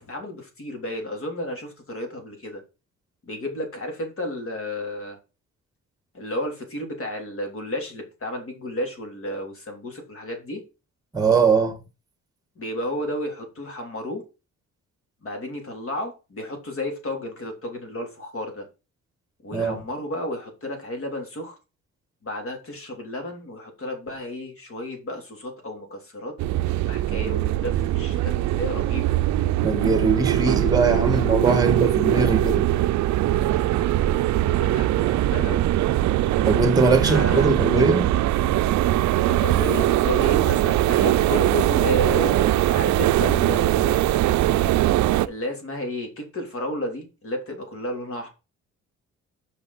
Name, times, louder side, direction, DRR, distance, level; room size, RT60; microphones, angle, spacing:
voice 1, 0.0-2.6 3.2-5.2 6.1-10.6 12.5-14.2 15.2-18.6 19.4-21.6 22.2-26.3 26.7-29.1 34.6-35.7 37.0-37.6 39.2-44.0 45.2-48.3, left 1 dB, 45° left, 3.4 m, -32 dB
voice 2, 11.1-11.8 19.5-19.8 29.6-32.7 36.4-38.1, right 3 dB, 10° right, 1.6 m, -21 dB
sound 1, 26.4-45.3, right 14 dB, 70° right, 0.5 m, -21 dB
5.9 x 5.6 x 5.4 m
cardioid pair, 90°, 30 cm